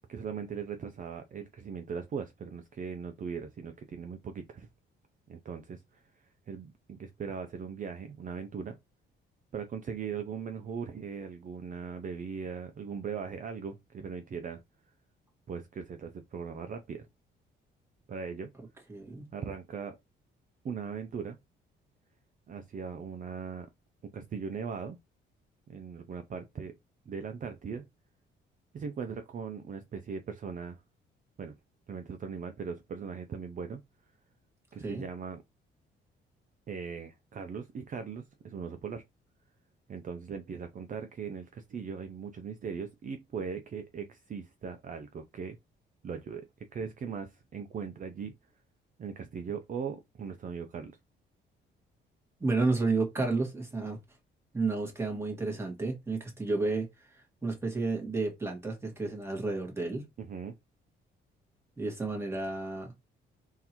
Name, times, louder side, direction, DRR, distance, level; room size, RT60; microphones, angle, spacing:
voice 1, 0.1-4.7 5.3-8.8 9.5-14.6 15.5-17.1 18.1-18.5 19.3-20.0 20.6-21.4 22.5-23.7 24.0-25.0 25.7-26.7 27.1-27.9 28.7-30.8 31.4-31.5 31.9-34.1 34.7-35.4 36.7-39.0 39.9-45.6 46.0-48.3 49.0-51.0 60.2-60.6, right 6 dB, 40° right, 0.5 m, -39 dB
voice 2, 18.9-19.3 34.8-35.0 52.4-54.0 54.5-60.1 61.8-62.9, right 3 dB, 10° right, 1.7 m, -31 dB
3.7 x 2.7 x 2.9 m
cardioid pair, 90°, 20 cm